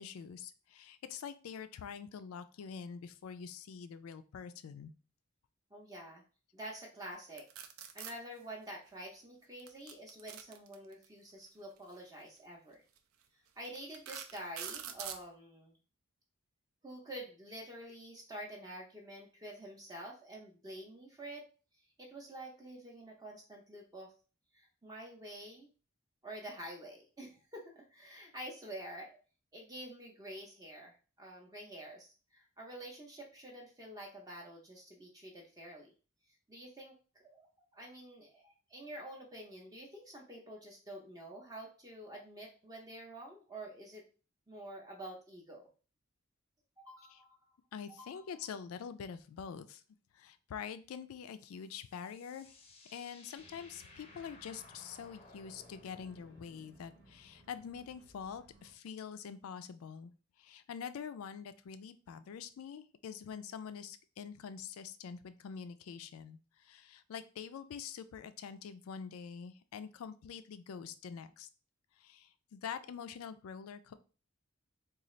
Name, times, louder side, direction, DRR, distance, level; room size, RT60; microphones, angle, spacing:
voice 1, 0.0-4.9 47.1-47.2 47.7-49.8 50.1-52.6 52.9-60.1 60.4-71.5 72.0-73.9, left 7 dB, 90° left, 12 dB, 0.3 m, -45 dB
voice 2, 5.7-6.2 6.5-7.5 7.9-12.8 13.6-15.8 16.8-21.5 21.7-24.1 24.5-25.7 26.2-29.2 29.5-35.9 36.5-37.5 37.7-44.0 44.5-45.7 46.8-47.5 47.9-48.3, right 1 dB, 20° right, -1 dB, 0.5 m, -48 dB
sound 1, 7.4-8.1 9.6-11.0 12.2-12.4 13.0-13.1 13.6-15.2, right 9 dB, 85° right, 0.4 m, -44 dB
sound 2, 51.4-58.6, left 3 dB, 30° left, 0.5 m, -60 dB
Organ, 53.3-58.8, right 1 dB, 70° right, 0.9 m, -63 dB
3.9 x 2.4 x 3.0 m, 0.36 s
head